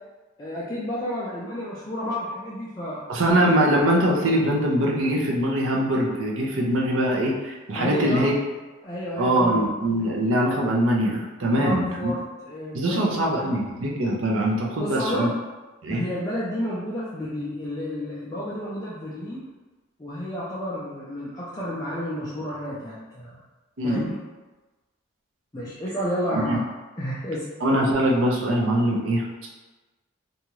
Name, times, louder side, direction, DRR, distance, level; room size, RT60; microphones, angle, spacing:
voice 1, 0.4-3.4 7.7-8.3 8.8-9.6 11.4-13.6 14.8-15.3 15.9-19.4 20.0-23.4 23.8-24.1 25.5-27.4, equal, 15° left, -9 dB, 0.3 m, -31 dB
voice 2, 3.1-8.4 9.2-12.1 12.7-15.3 15.8-16.0 23.8-24.0 26.3-26.6 27.6-29.5, right 1 dB, 70° right, -2 dB, 0.6 m, -22 dB
2.7 x 2.3 x 3.0 m, 1.2 s
head